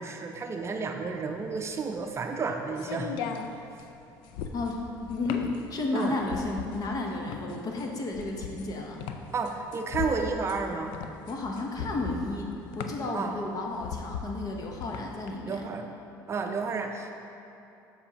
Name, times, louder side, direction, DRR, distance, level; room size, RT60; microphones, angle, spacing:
voice 1, 0.0-3.1 5.9-6.2 9.3-10.9 13.1-13.3 15.4-15.9 16.3-17.1, right 4 dB, 30° right, 4 dB, 0.5 m, -31 dB
sound 1, 1.4-15.3, left 6 dB, 75° left, 0.4 m, -39 dB
voice 2, 5.1-9.0 11.3-12.5 12.7-15.6, left 2 dB, 45° left, 1 dB, 1.0 m, -32 dB
7.1 x 6.8 x 2.9 m, 2.8 s
supercardioid pair, 95°, 8 cm